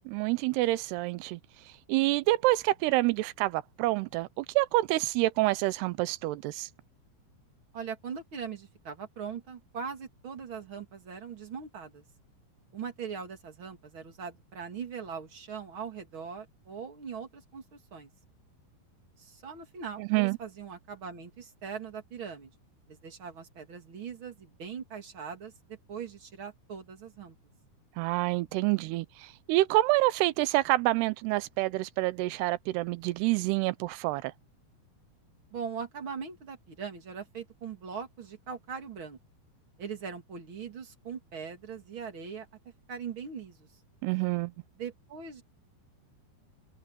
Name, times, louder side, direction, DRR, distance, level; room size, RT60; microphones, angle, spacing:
voice 1, 0.1-1.4 1.9-6.7 20.0-20.4 28.0-34.3 44.0-44.5, right 19 dB, 85° right, 2.7 m, -27 dB
voice 2, 7.7-12.0 12.7-18.1 19.2-22.5 22.9-27.3 35.5-39.2 39.8-42.5 42.9-43.7 44.8-45.4, right 6 dB, 35° right, 2.7 m, -41 dB
omnidirectional pair, 4.7 m